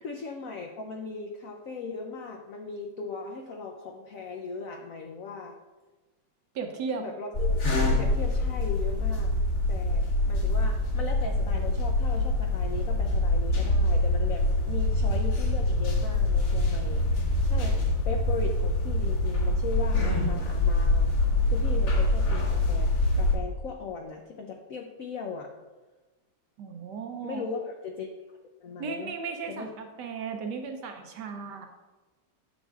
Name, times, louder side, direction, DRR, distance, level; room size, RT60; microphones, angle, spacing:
voice 1, 0.0-5.6 6.9-7.6 8.0-9.3 9.7-21.1 21.5-25.5 27.2-28.1 28.4-29.1 29.5-29.7, left 4 dB, 85° left, 2 dB, 0.7 m, -38 dB
voice 2, 6.5-7.0 26.6-27.4 28.8-31.7, right 5 dB, 70° right, 4 dB, 1.1 m, -35 dB
sound 1, 7.3-23.3, left 2 dB, 55° left, 2.2 m, -25 dB
10.5 x 7.0 x 2.3 m, 1.2 s
omnidirectional pair, 2.2 m